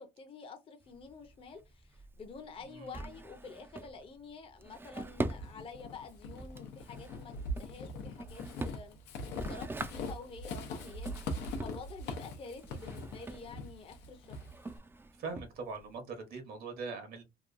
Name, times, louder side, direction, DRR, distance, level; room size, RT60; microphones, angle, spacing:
voice 1, 0.0-14.4, left 4 dB, 35° left, 0.7 m, -49 dB
Drawer open or close, 0.8-16.0, right 2 dB, 15° right, 0.3 m, -44 dB
voice 2, 2.6-3.1 15.2-17.2, right 4 dB, 65° right, 0.9 m, -42 dB
Walk footsteps / Squeak, 5.2-14.8, left 1 dB, 90° left, 0.7 m, -42 dB
2.9 x 2.3 x 2.5 m
cardioid pair, 110°, 17 cm